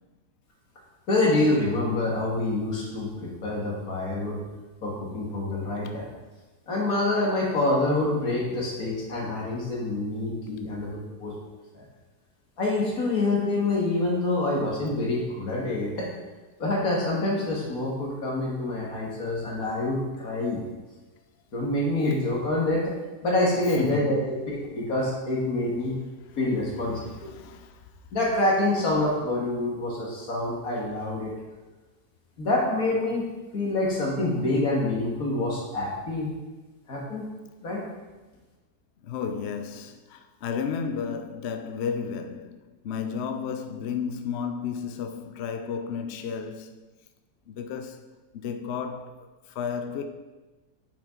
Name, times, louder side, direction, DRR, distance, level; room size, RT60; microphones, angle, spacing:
voice 1, 1.1-4.4 4.8-6.0 6.7-11.4 11.7-11.8 12.6-16.1 16.6-20.6 21.5-22.9 23.2-25.9 26.4-27.3 28.1-31.3 32.4-33.2 33.5-36.3 36.9-37.3 37.6-37.8, left 2 dB, 55° left, 2.2 m, -26 dB
voice 2, 23.6-24.4 25.6-25.8 26.2-27.8 39.0-46.8 47.5-48.0 48.3-50.1, left 6 dB, 80° left, 0.5 m, -33 dB
8.5 x 6.1 x 3.8 m
omnidirectional pair, 1.8 m